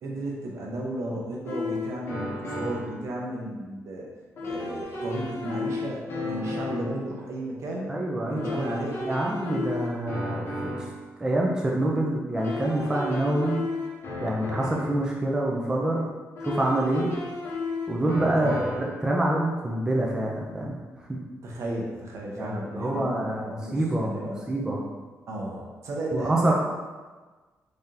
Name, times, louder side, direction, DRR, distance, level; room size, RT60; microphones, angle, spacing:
voice 1, 0.0-4.1 4.4-8.0 8.3-9.0 18.3-18.6 21.4-24.4 25.3-26.5, right 1 dB, 60° right, -2 dB, 0.8 m, -33 dB
sound 1, 1.5-3.0 4.4-7.0 8.4-11.0 12.4-15.0 16.4-19.0, left 2 dB, 45° left, 0.9 m, -34 dB
voice 2, 7.9-8.7 9.1-10.7 11.2-13.6 14.2-16.1 16.4-17.1 17.9-18.5 18.8-20.8 22.4-24.9 26.1-26.5, right 1 dB, 10° right, -2 dB, 0.5 m, -26 dB
3.7 x 3.3 x 2.8 m, 1.3 s
cardioid pair, 135°, 6 cm